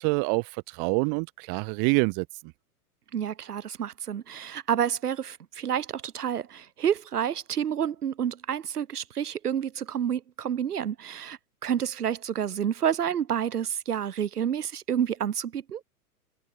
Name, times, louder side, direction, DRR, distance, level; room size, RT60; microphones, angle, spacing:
voice 1, 0.0-2.3, right 40 dB or more, 35° right, 0.6 m, -26 dB
voice 2, 3.1-15.8, right 9 dB, 80° right, 6.0 m, -29 dB
hypercardioid pair, 110°, 45 cm